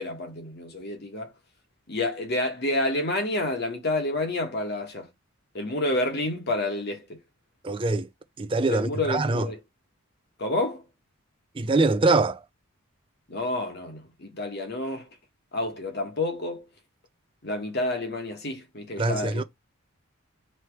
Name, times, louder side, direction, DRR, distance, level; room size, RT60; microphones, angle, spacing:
voice 1, 0.0-1.3 1.9-5.1 5.5-7.2 8.7-9.6 10.4-10.8 13.3-15.1 15.5-16.7 17.4-19.4, left 2 dB, 50° left, 1.2 m, -29 dB
voice 2, 7.6-8.1 8.4-9.4 11.6-12.4 19.0-19.4, right 3 dB, 25° right, 0.4 m, -23 dB
3.2 x 3.0 x 4.4 m
head